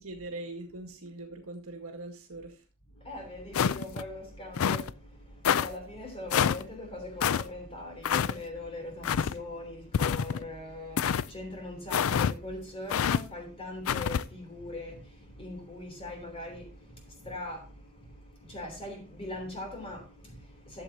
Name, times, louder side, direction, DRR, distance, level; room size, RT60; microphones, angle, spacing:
voice 1, 0.0-2.6, right 2 dB, 70° right, 2.0 m, -42 dB
voice 2, 2.9-20.8, left 1 dB, 25° left, 3.1 m, -41 dB
sound 1, 3.5-4.0 4.5-4.9 5.4-5.7 6.3-6.6 7.2-7.4 8.0-8.3 9.0-9.3 9.9-10.4 11.0-11.3 11.9-12.3 12.9-13.2 13.9-14.2, left 8 dB, 65° left, 0.4 m, -26 dB
12.5 x 7.7 x 2.8 m
head